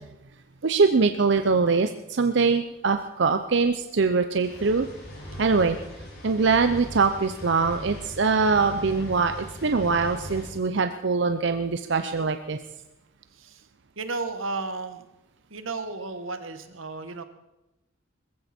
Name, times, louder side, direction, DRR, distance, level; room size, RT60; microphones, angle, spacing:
voice 1, 0.6-4.9 5.4-5.8 6.2-12.6, right 4 dB, 60° right, 7 dB, 0.7 m, -23 dB
sound 1, 4.4-10.5, equal, 55° left, 6.1 m, -40 dB
voice 2, 13.3-13.7 14.0-15.0 15.5-17.2, right 3 dB, 90° right, 9 dB, 1.5 m, -33 dB
20.5 x 15.0 x 4.4 m, 0.96 s
head